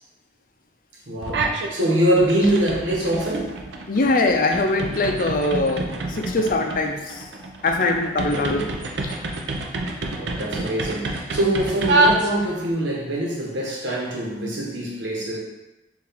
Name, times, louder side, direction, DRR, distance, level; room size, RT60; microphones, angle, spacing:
voice 1, 1.1-3.6 8.2-8.6 10.0-15.4, right 1 dB, 85° right, -3 dB, 1.1 m, -24 dB
sound 1, 1.2-1.7 2.1-12.7, right 2 dB, 70° right, 0.5 m, -27 dB
voice 2, 3.9-7.3 7.6-8.7 9.0-9.2, left 2 dB, 50° left, 3 dB, 0.5 m, -22 dB
4.6 x 2.5 x 3.4 m, 0.98 s
head